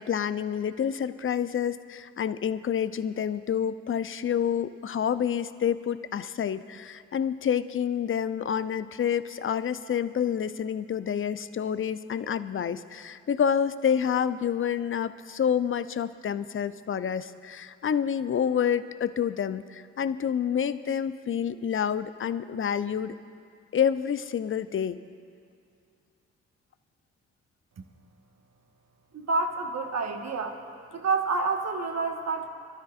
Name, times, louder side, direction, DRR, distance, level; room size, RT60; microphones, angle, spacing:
voice 1, 0.0-23.2 23.7-25.0, left 8 dB, 35° left, 14 dB, 0.6 m, -28 dB
voice 2, 29.1-30.6 30.9-32.5, right 4 dB, 45° right, 3 dB, 1.5 m, -28 dB
25.5 x 13.0 x 2.5 m, 2.3 s
hypercardioid pair, 45°, 36 cm